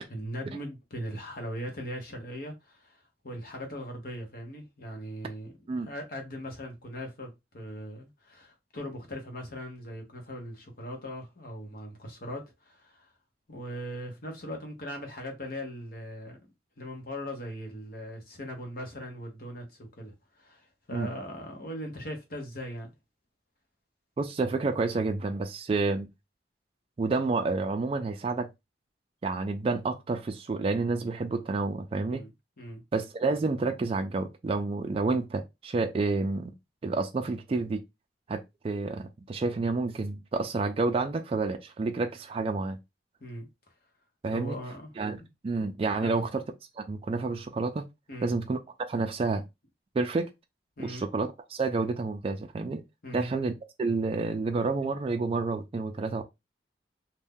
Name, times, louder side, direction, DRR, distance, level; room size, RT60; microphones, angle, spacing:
voice 1, 0.1-13.1 13.5-16.4 16.8-22.9 32.1-32.3 32.6-32.8 43.2-43.5 44.3-45.3 46.0-46.3 48.1-48.3 50.8-51.0 53.0-53.3, equal, 55° left, 0.9 m, -39 dB
voice 2, 24.2-26.1 27.0-28.5 29.2-32.2 32.9-36.5 36.8-37.8 38.3-42.8 44.2-44.6 45.0-45.2 45.4-46.4 46.8-47.8 48.2-49.5 50.0-50.3 50.8-52.8 53.1-53.5 53.8-56.2, right 3 dB, 35° right, 0.3 m, -29 dB
2.6 x 2.2 x 3.5 m
head